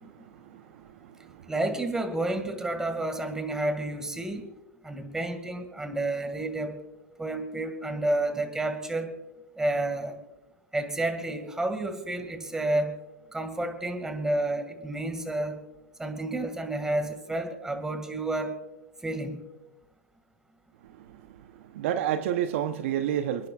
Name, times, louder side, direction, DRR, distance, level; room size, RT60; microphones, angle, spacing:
voice 1, 0.3-1.5 21.0-21.1 21.6-23.5, right 10 dB, 55° right, 0.9 m, -30 dB
voice 2, 1.5-4.5 4.8-6.8 7.2-9.1 9.6-10.2 10.7-13.0 13.3-15.6 16.0-18.6 19.0-19.4, right 2 dB, 5° right, 2.0 m, -30 dB
29.0 x 10.5 x 2.4 m
hypercardioid pair, 110°, 8 cm